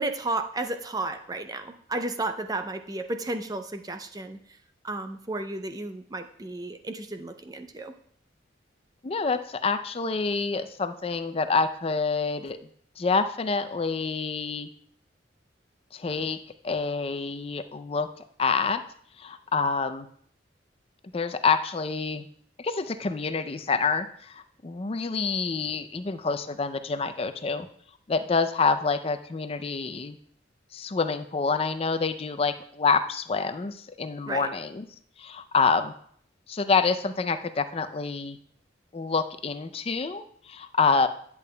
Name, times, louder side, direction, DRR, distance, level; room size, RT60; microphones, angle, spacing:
voice 1, 0.0-4.4 4.8-7.9 34.3-34.5, right 2 dB, 20° right, 7 dB, 0.5 m, -33 dB
voice 2, 9.0-12.6 13.0-14.7 15.9-16.4 16.6-18.1 18.4-18.8 19.2-20.1 21.1-22.3 22.6-27.7 28.1-30.2 30.7-34.9 35.2-35.9 36.5-38.4 38.9-41.1, left 4 dB, 30° left, 10 dB, 0.4 m, -27 dB
10.5 x 8.2 x 2.2 m, 0.62 s
head